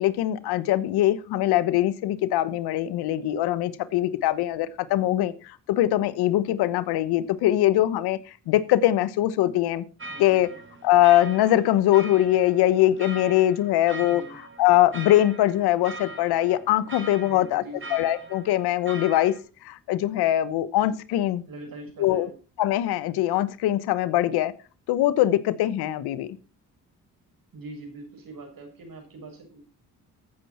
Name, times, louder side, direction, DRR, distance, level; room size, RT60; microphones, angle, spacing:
voice 1, 0.0-8.2 8.5-9.8 10.2-10.5 10.8-17.6 17.9-19.3 19.6-21.4 22.0-22.3 22.6-24.5 24.9-26.3, left 14 dB, 85° left, 17 dB, 1.0 m, -22 dB
sound 1, 10.0-19.4, right 2 dB, 30° right, 2.8 m, -41 dB
voice 2, 10.1-10.6 14.0-14.3 17.2-17.9 21.4-22.3 27.5-29.6, right 2 dB, 65° right, 3 dB, 6.8 m, -43 dB
14.5 x 9.3 x 4.3 m, 0.35 s
supercardioid pair, 60°, 37 cm